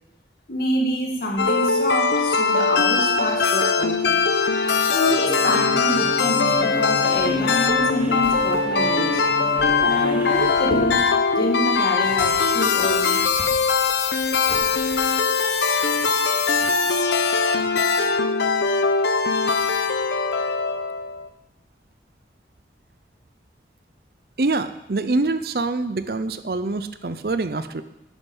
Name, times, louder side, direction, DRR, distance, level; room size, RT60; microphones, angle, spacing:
voice 1, 0.5-4.2 4.9-9.2 9.8-13.2, left 1 dB, 55° left, 0 dB, 2.2 m, -26 dB
sound 1, 1.4-21.3, left 4 dB, 80° left, 0.8 m, -21 dB
sound 2, 5.1-10.5, equal, 10° right, 1.0 m, -32 dB
sound 3, 7.0-15.2, equal, 30° right, 3.6 m, -39 dB
voice 2, 24.4-27.8, right 3 dB, 60° right, 11 dB, 0.6 m, -25 dB
11.0 x 9.1 x 5.6 m, 0.86 s
head